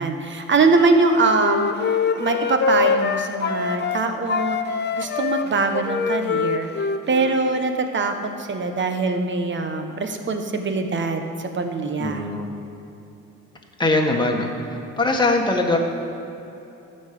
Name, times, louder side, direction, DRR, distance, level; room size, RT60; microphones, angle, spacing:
voice 1, 0.0-1.7 2.1-4.6 4.9-12.3, right 3 dB, 40° right, 6 dB, 1.3 m, -23 dB
Wind instrument woodwind instrument, 1.0-4.0 4.3-7.6, left 5 dB, 35° left, 0.6 m, -24 dB
voice 2, 12.0-12.5 13.8-14.5 15.0-15.8, left 2 dB, 15° left, 0 dB, 1.7 m, -21 dB
12.5 x 5.6 x 7.8 m, 3.0 s
cardioid pair, 90°, 30 cm